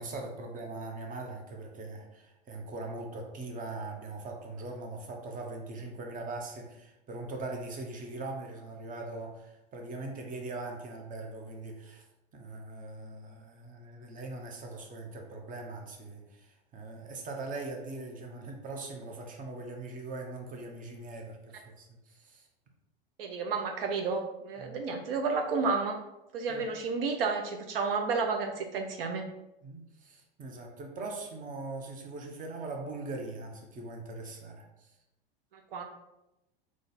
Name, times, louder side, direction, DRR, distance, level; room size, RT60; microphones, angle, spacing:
voice 1, 0.0-12.0 12.3-22.5 24.6-24.8 26.5-26.7 29.6-34.9, right 2 dB, 30° right, 2 dB, 0.9 m, -41 dB
voice 2, 23.2-26.0 26.3-29.2 35.7-35.8, right 4 dB, 75° right, 4 dB, 0.6 m, -31 dB
3.8 x 3.1 x 3.9 m, 0.93 s
hypercardioid pair, 100°, 29 cm